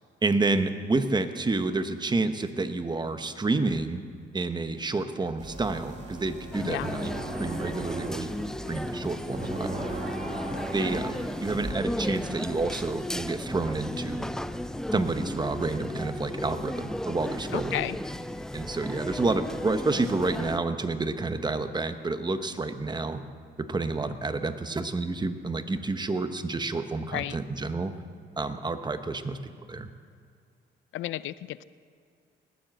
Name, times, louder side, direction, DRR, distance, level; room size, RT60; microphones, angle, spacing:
voice 1, 0.2-4.0 4.3-7.1 7.4-8.3 8.7-9.8 10.7-14.3 14.9-17.9 18.5-23.2 23.6-27.9 28.4-29.4 29.7-29.9, right 3 dB, 20° right, 9 dB, 1.0 m, -29 dB
sound 1, 5.4-11.7, right 2 dB, 35° right, 2.5 m, -37 dB
sound 2, 6.5-20.6, left 1 dB, 5° left, 0.4 m, -35 dB
voice 2, 6.6-6.9 17.5-18.0 27.0-27.4 30.9-31.6, left 14 dB, 80° left, 17 dB, 0.5 m, -33 dB
20.0 x 7.6 x 7.7 m, 2.3 s
cardioid pair, 90°, 20 cm